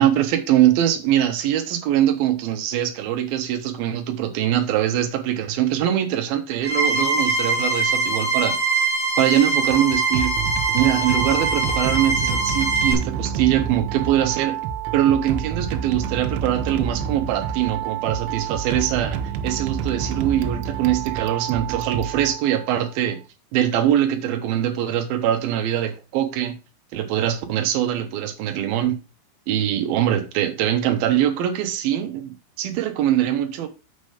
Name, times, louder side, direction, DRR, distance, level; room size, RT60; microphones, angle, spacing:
voice 1, 0.0-8.6 9.2-10.3 10.7-14.6 14.9-23.2 23.5-26.6 26.9-29.0 29.5-33.7, right 11 dB, 70° right, 2.5 m, -22 dB
sound 1, 6.6-12.9, right 3 dB, 30° left, 1.3 m, -23 dB
sound 2, 9.7-22.8, right 8 dB, 90° right, 3.2 m, -28 dB
6.5 x 6.2 x 4.9 m
omnidirectional pair, 5.2 m